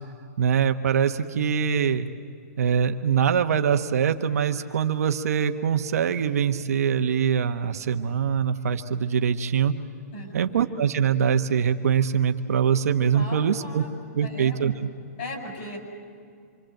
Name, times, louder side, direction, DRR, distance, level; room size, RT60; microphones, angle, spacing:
voice 1, 0.4-2.1 2.6-9.7 10.3-13.8 14.1-14.9, right 7 dB, 70° right, 7 dB, 1.3 m, -23 dB
voice 2, 10.1-10.5 13.1-14.6 15.2-15.8, left 1 dB, 45° left, 2 dB, 6.3 m, -38 dB
26.5 x 25.0 x 7.9 m, 2.3 s
hypercardioid pair, 170°, 9 cm